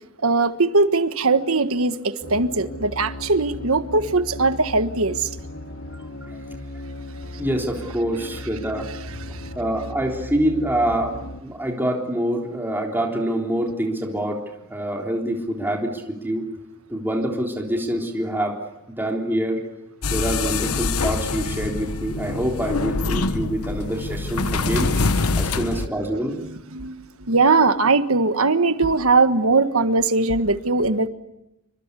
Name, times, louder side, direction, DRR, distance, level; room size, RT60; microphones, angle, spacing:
voice 1, 0.2-5.3 9.3-9.5 26.4-31.1, right 3 dB, 65° right, 10 dB, 1.5 m, -20 dB
sound 1, 2.2-11.4, left 1 dB, 60° left, 1.9 m, -36 dB
voice 2, 7.4-8.9 9.6-11.1 11.4-14.4 14.7-16.4 16.9-18.6 19.0-19.7 20.1-24.9 25.3-26.4, right 1 dB, 10° right, 0 dB, 3.6 m, -25 dB
sound 2, 20.0-25.9, left 3 dB, 80° left, 1.1 m, -25 dB
27.5 x 25.0 x 8.4 m, 0.90 s
head